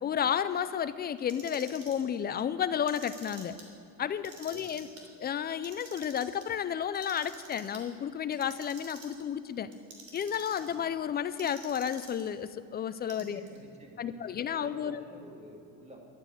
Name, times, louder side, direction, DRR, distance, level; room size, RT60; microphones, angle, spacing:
voice 1, 0.0-3.5 4.0-4.9 5.2-9.7 10.1-13.4 14.0-15.0, left 8 dB, 30° left, 13 dB, 0.4 m, -32 dB
Clock, 1.2-2.0 2.7-3.6 4.1-5.0 5.5-6.4 7.0-7.8 8.3-9.2 9.7-10.8 11.4-12.3 13.0-13.6, right 3 dB, 45° right, 3.2 m, -49 dB
voice 2, 4.5-4.8 10.6-10.8 13.2-16.0, right 1 dB, 20° right, 1 dB, 2.3 m, -50 dB
12.0 x 8.9 x 8.9 m, 2.5 s
cardioid pair, 145°, 33 cm